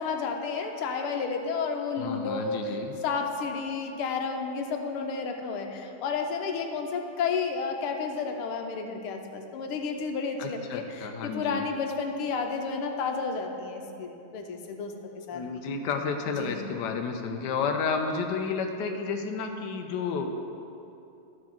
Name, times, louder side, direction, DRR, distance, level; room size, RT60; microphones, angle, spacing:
voice 1, 0.0-15.6 16.3-16.6, left 5 dB, 85° left, 4 dB, 1.7 m, -32 dB
voice 2, 2.0-2.9 10.4-11.6 15.3-20.3, left 5 dB, 65° left, 4 dB, 1.2 m, -31 dB
12.0 x 4.7 x 6.0 m, 2.8 s
omnidirectional pair, 2.3 m